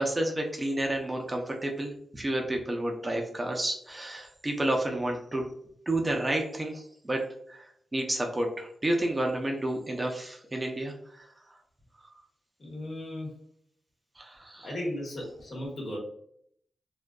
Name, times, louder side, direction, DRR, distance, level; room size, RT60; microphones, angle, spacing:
voice 1, 0.0-5.5 5.9-7.2 7.5-7.6 7.9-10.9 14.2-14.7, right 1 dB, 25° right, 1 dB, 0.5 m, -30 dB
voice 2, 12.6-13.4 14.6-16.0, left 1 dB, 60° left, -3 dB, 1.1 m, -36 dB
2.4 x 2.2 x 2.3 m, 0.67 s
cardioid pair, 65°, 0 cm